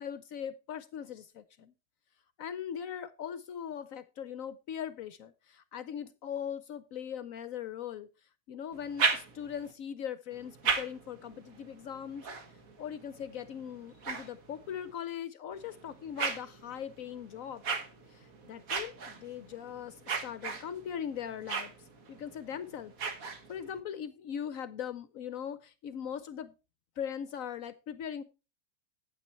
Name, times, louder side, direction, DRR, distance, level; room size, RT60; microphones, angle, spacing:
voice 1, 0.0-1.7 2.4-8.1 8.5-12.3 12.8-17.6 18.1-21.7 22.1-26.5 27.0-28.2, left 8 dB, 65° left, 14 dB, 1.0 m, -40 dB
sound 1, 8.7-9.7 10.3-14.9 15.5-23.8, right 5 dB, 60° right, 1.8 m, -38 dB
9.1 x 9.0 x 4.2 m, 0.29 s
omnidirectional pair, 1.7 m